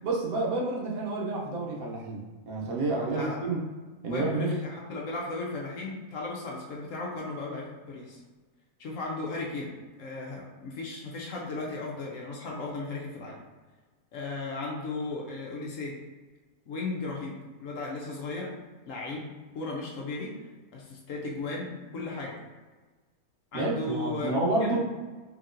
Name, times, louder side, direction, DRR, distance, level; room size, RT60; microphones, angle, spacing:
voice 1, 0.0-3.6 4.0-4.5 23.5-24.8, right 2 dB, 70° right, -3 dB, 1.1 m, -29 dB
voice 2, 3.1-3.5 4.0-8.2 8.8-13.4 14.1-16.0 16.7-18.5 18.9-22.4 23.5-24.8, left 3 dB, 65° left, -2 dB, 0.9 m, -36 dB
4.1 x 2.9 x 2.5 m, 1.3 s
omnidirectional pair, 1.6 m